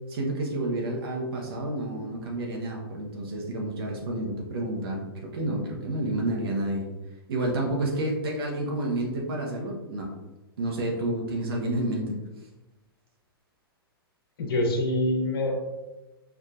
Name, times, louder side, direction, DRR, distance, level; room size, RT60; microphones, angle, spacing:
voice 1, 0.1-6.9 7.3-10.1 10.6-12.2, right 1 dB, 70° right, -1 dB, 0.9 m, -30 dB
voice 2, 14.4-15.5, left 1 dB, 65° left, 1 dB, 0.8 m, -25 dB
4.7 x 2.4 x 2.4 m, 1.1 s
hypercardioid pair, 120°, 13 cm